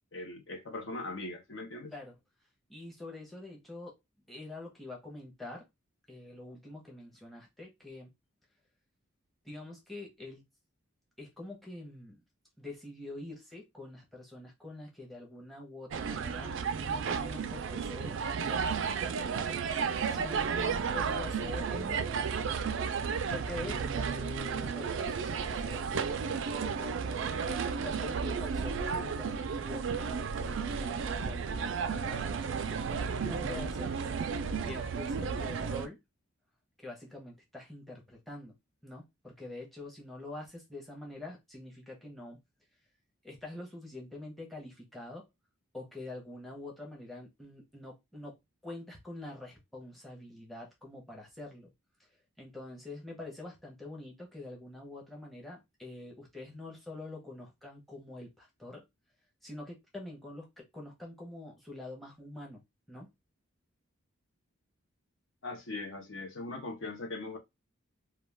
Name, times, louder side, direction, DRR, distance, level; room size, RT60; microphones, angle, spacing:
voice 1, 0.1-1.9 65.4-67.4, left 2 dB, 60° left, 0.7 m, -40 dB
voice 2, 2.7-4.0 4.3-5.7 6.1-8.1 9.4-10.4 11.2-12.2 12.6-18.7 19.0-19.2 20.1-22.2 23.0-32.2 33.2-34.1 34.6-36.0 36.8-38.5 38.8-42.4 43.2-45.3 45.7-51.7 52.4-58.9 59.4-62.6 62.9-63.1, left 2 dB, ahead, 0.7 m, -46 dB
sound 1, 15.9-35.9, right 6 dB, 60° right, 0.3 m, -33 dB
2.3 x 2.3 x 3.2 m
head